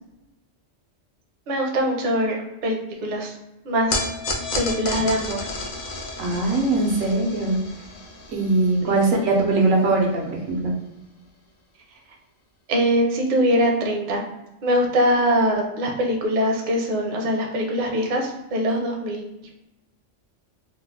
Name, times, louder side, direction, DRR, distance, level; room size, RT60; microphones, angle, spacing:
voice 1, 1.5-3.3 3.6-4.0 4.5-5.5 8.8-8.9 12.7-14.2 14.6-19.2, equal, 50° right, 1 dB, 0.6 m, -22 dB
sound 1, 3.9-10.3, left 2 dB, 55° left, 0.5 m, -32 dB
voice 2, 6.2-7.6 8.3-10.7, right 2 dB, 90° right, 0 dB, 1.2 m, -21 dB
3.1 x 2.0 x 3.5 m, 0.93 s
omnidirectional pair, 1.3 m